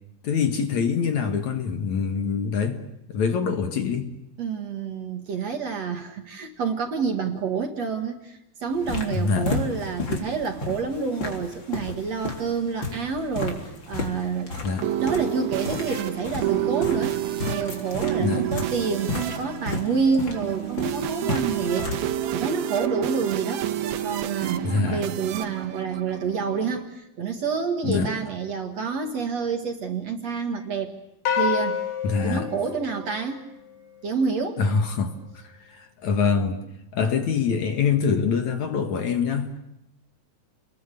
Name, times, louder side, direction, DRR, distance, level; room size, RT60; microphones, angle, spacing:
voice 1, 0.2-2.8 3.1-4.1 9.1-9.5 14.6-14.9 18.2-18.5 24.6-25.1 27.8-28.1 32.0-32.5 34.6-36.6 36.9-39.5, left 5 dB, 55° left, 6 dB, 2.6 m, -25 dB
voice 2, 4.4-14.6 15.0-22.0 22.3-23.7 24.0-30.9 31.3-31.8 32.2-33.4 34.0-34.6, right 5 dB, 50° right, 5 dB, 2.6 m, -28 dB
sound 1, 8.7-22.1, left 3 dB, 30° left, 4.0 m, -33 dB
sound 2, 14.4-26.8, right 12 dB, 75° right, 3.2 m, -29 dB
sound 3, 31.3-33.8, left 7 dB, 85° left, 4.9 m, -28 dB
30.0 x 21.5 x 8.4 m, 0.86 s
omnidirectional pair, 4.4 m